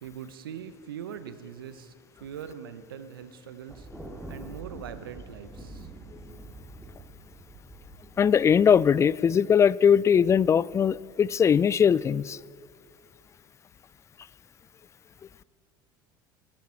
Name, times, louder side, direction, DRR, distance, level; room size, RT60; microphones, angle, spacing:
voice 1, 0.0-1.9 2.2-3.9 4.3-5.9, right 8 dB, 75° right, 0.8 m, -41 dB
Thunder, 3.7-9.0, right 2 dB, ahead, 2.8 m, -45 dB
voice 2, 8.2-12.4, left 7 dB, 25° left, 0.3 m, -20 dB
20.0 x 14.5 x 4.4 m
figure-of-eight pair, 70°, 12 cm